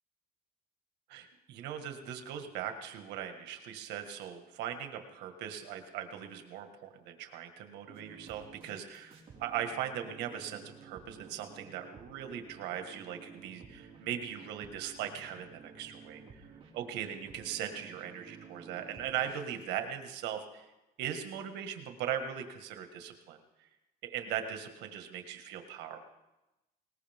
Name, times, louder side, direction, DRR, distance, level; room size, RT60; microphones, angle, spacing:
voice 1, 1.1-16.5 16.7-20.7 21.0-23.7 24.0-26.0, right 9 dB, 90° right, 6 dB, 1.7 m, -39 dB
sound 1, 7.9-19.7, right 5 dB, 35° right, 4.7 m, -53 dB
21.0 x 19.5 x 3.6 m, 0.98 s
cardioid pair, 110°, 17 cm